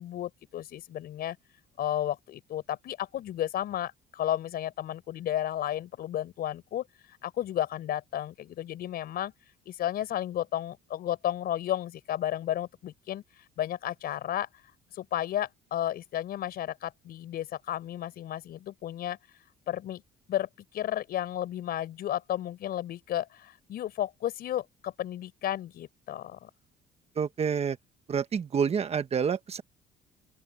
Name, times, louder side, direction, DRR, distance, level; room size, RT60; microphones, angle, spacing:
voice 1, 0.0-1.4 1.8-6.8 7.2-9.3 9.7-13.2 13.6-14.5 14.9-19.2 19.7-20.0 20.3-26.5, left 12 dB, 65° left, 5.9 m, -33 dB
voice 2, 27.2-27.8 28.1-29.6, right 6 dB, 35° right, 1.4 m, -28 dB
open air
cardioid pair, 110°, 17 cm